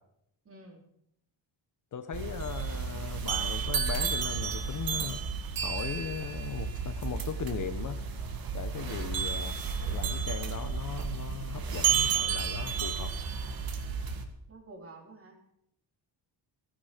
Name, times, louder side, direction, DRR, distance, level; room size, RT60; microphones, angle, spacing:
voice 1, 0.4-0.8 8.9-9.2 14.5-15.4, right 2 dB, 30° right, 2 dB, 3.3 m, -50 dB
voice 2, 1.9-5.2 5.6-8.0 8.5-9.5 9.9-13.1, left 8 dB, 40° left, 9 dB, 0.9 m, -38 dB
sound 1, 2.1-14.2, right 6 dB, 50° right, 1.9 m, -32 dB
15.0 x 15.0 x 5.0 m, 0.76 s
cardioid pair, 170°, 46 cm